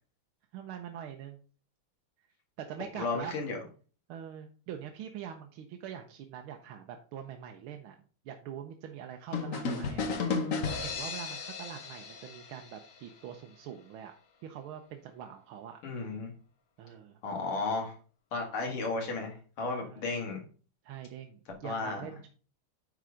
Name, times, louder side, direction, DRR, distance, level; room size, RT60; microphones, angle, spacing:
voice 1, 0.5-1.4 2.6-3.4 4.1-8.0 8.2-10.0 10.8-14.1 14.4-15.8 16.8-17.2 19.8-20.0 20.8-22.3, right 9 dB, 75° right, 4 dB, 1.6 m, -44 dB
voice 2, 2.9-3.6 15.8-16.3 17.2-17.9 18.3-20.4 21.6-22.0, left 3 dB, 85° left, 2 dB, 2.8 m, -34 dB
sound 1, 9.3-13.1, left 4 dB, 50° left, 1.1 m, -34 dB
9.9 x 3.9 x 5.0 m, 0.40 s
omnidirectional pair, 2.4 m